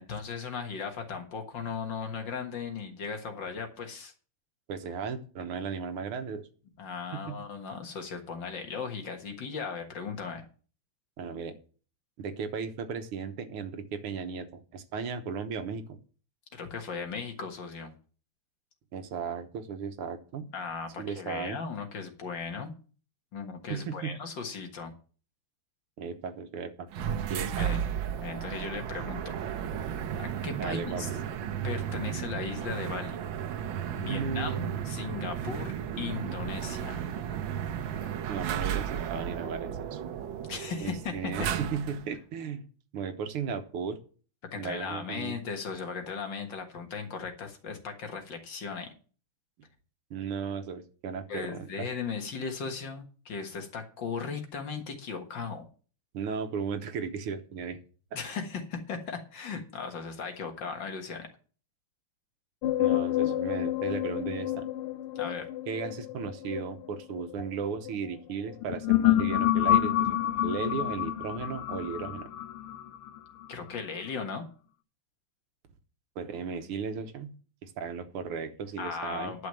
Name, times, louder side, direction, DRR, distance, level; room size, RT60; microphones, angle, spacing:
voice 1, 0.0-4.1 6.8-10.5 16.5-17.9 20.5-22.7 23.3-24.9 27.6-27.8 28.2-29.4 30.2-31.1 31.6-33.2 33.9-35.7 36.0-37.0 40.5-41.5 44.5-48.9 51.3-55.7 58.1-61.3 65.2-65.5 73.5-74.4 78.8-79.5, left 5 dB, 60° left, 5 dB, 2.2 m, -37 dB
voice 2, 4.7-6.5 7.1-7.4 11.2-11.5 12.2-16.0 18.9-20.5 21.0-21.6 23.7-24.2 26.0-26.9 27.3-27.7 30.6-31.2 34.0-34.8 38.3-40.0 40.8-42.7 42.9-44.0 44.6-45.4 50.1-51.9 56.1-57.8 62.8-64.7 65.7-70.2 70.4-72.3 76.2-77.3 77.6-79.3, right 6 dB, 85° right, 9 dB, 2.0 m, -36 dB
sound 1, 26.9-42.1, right 9 dB, 70° right, 1.5 m, -34 dB
sound 2, 62.6-67.9 68.5-73.5, left 13 dB, 90° left, 1.7 m, -28 dB
11.0 x 6.4 x 7.6 m, 0.40 s
omnidirectional pair, 2.4 m